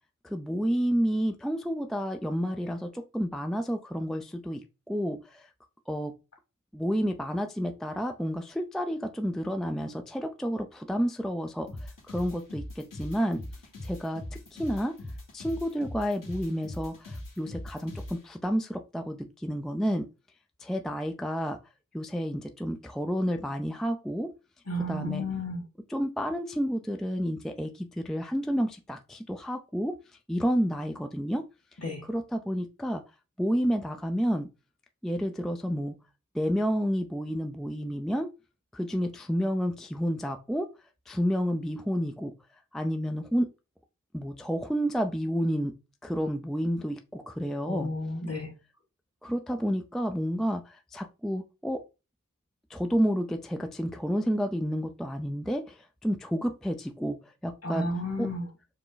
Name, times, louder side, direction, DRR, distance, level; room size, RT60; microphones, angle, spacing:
voice 1, 0.2-5.5 5.9-6.1 6.7-13.4 13.8-14.2 14.5-14.9 15.3-20.1 20.6-21.6 21.9-24.3 24.9-25.2 25.9-30.0 30.3-31.4 32.0-33.0 33.4-34.5 35.0-35.9 36.3-38.3 38.7-40.7 41.1-42.3 42.7-43.5 44.1-48.0 49.2-51.8 52.7-57.2 57.4-57.9 58.2-58.3, equal, ahead, 0.4 m, -30 dB
sound 1, 11.7-18.2, left 1 dB, 70° left, 1.7 m, -41 dB
voice 2, 24.7-25.6 31.8-32.0 47.7-48.5 57.6-58.5, left 1 dB, 45° left, 1.9 m, -32 dB
4.7 x 2.1 x 3.9 m
cardioid pair, 45°, 34 cm